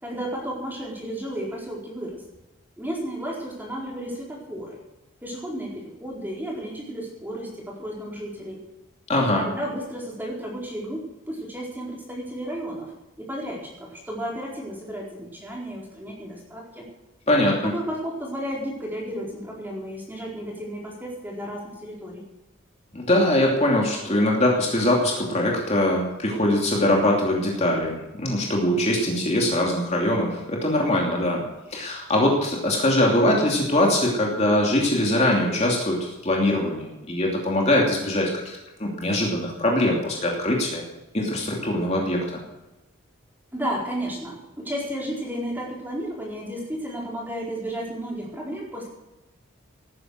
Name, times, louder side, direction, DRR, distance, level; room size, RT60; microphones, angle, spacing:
voice 1, 0.0-2.2 2.8-4.8 5.2-8.6 9.2-12.9 13.2-16.9 17.7-22.2 43.5-48.9, equal, 10° right, -3 dB, 4.5 m, -33 dB
voice 2, 9.1-9.4 17.3-17.7 22.9-31.4 31.7-40.8 41.1-42.4, left 1 dB, 30° left, -1 dB, 2.9 m, -22 dB
18.5 x 9.8 x 6.5 m, 1.0 s
head